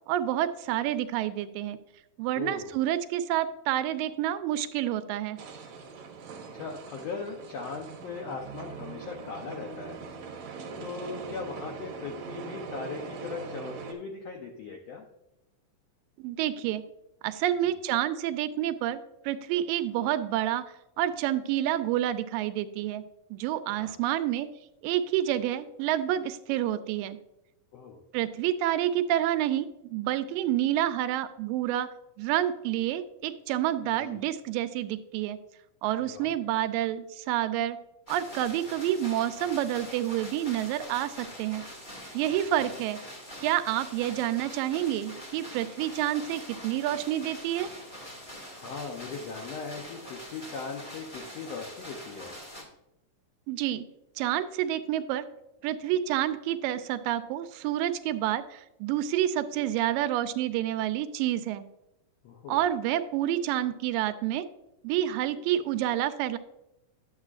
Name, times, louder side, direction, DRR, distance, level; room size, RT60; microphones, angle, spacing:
voice 1, 0.1-1.8 2.2-5.4 16.2-16.8 17.2-20.6 21.0-23.0 23.3-24.5 24.8-27.2 28.1-31.9 32.2-35.4 35.8-37.8 38.1-41.6 42.1-43.0 43.4-47.7 53.5-53.8 54.2-55.3 55.6-61.7 62.5-64.5 64.8-66.4, right 12 dB, 90° right, 11 dB, 2.3 m, -28 dB
voice 2, 2.3-2.7 6.5-10.0 10.8-15.0 17.6-17.7 23.7-24.0 27.7-28.0 34.0-34.2 36.0-36.3 48.4-52.4 62.2-62.6, left 4 dB, 80° left, 2 dB, 1.4 m, -39 dB
sound 1, 5.4-13.9, right 5 dB, 65° right, 2.2 m, -41 dB
sound 2, 38.1-52.6, equal, 35° left, 0.7 m, -44 dB
10.5 x 7.4 x 2.4 m, 0.88 s
omnidirectional pair, 3.9 m